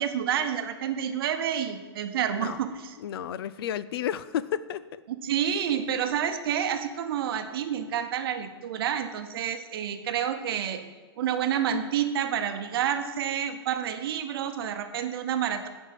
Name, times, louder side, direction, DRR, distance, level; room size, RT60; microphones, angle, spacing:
voice 1, 0.0-3.0 5.2-10.8 11.2-15.7, right 9 dB, 60° right, 8 dB, 0.8 m, -29 dB
voice 2, 3.0-5.0, left 10 dB, 65° left, 16 dB, 0.5 m, -32 dB
10.5 x 5.4 x 7.6 m, 1.3 s
hypercardioid pair, 150°, 14 cm